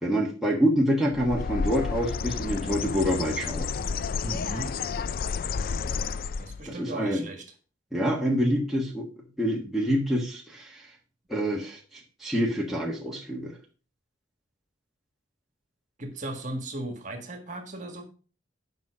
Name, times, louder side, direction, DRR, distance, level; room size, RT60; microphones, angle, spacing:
voice 1, 0.0-3.7 6.7-7.2 7.9-9.1 9.4-10.9 11.3-13.5, equal, ahead, -3 dB, 1.3 m, -26 dB
Bird, 1.1-6.7, left 5 dB, 50° left, 0.4 m, -31 dB
voice 2, 4.2-4.7 6.4-7.4 16.0-18.0, right 1 dB, 40° right, 5 dB, 1.7 m, -36 dB
9.3 x 5.6 x 4.9 m, 0.38 s
head